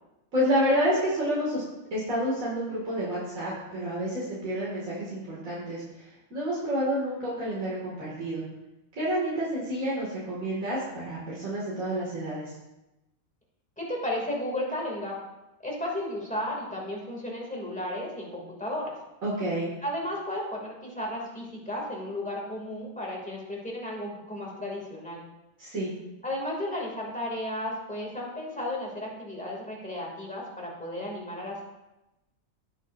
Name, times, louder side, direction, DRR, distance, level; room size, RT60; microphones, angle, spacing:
voice 1, 0.3-1.6 1.9-8.4 9.0-12.5 19.2-19.7 25.6-25.9, equal, 75° right, -7 dB, 3.0 m, -29 dB
voice 2, 13.8-15.2 15.6-18.9 19.8-25.2 26.2-31.7, left 1 dB, 5° left, -3 dB, 2.8 m, -34 dB
18.5 x 7.3 x 2.7 m, 0.98 s
omnidirectional pair, 1.4 m